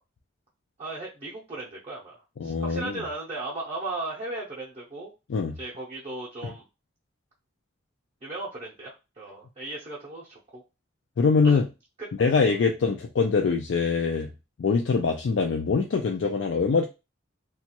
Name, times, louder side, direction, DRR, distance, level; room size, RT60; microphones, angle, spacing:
voice 1, 0.8-5.1 5.6-6.6 8.2-10.6 11.4-11.6 12.0-12.1 12.5-12.6, right 2 dB, 30° right, -5 dB, 0.6 m, -36 dB
voice 2, 2.4-3.0 5.3-5.6 11.2-11.7 12.2-14.3 14.6-16.8, left 4 dB, 65° left, 2 dB, 0.4 m, -23 dB
2.9 x 2.3 x 2.8 m, 0.27 s
head